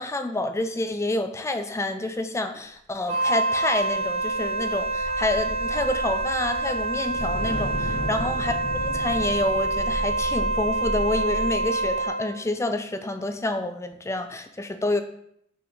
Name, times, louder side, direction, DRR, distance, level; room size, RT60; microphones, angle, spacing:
voice 1, 0.0-8.5 8.8-15.0, left 2 dB, 15° left, 9 dB, 0.4 m, -28 dB
Wind instrument woodwind instrument, 3.0-12.3, right 2 dB, 35° right, 1.0 m, -27 dB
sound 1, 3.6-12.0, equal, 60° left, 2.2 m, -34 dB
6.1 x 4.8 x 3.9 m, 0.71 s
head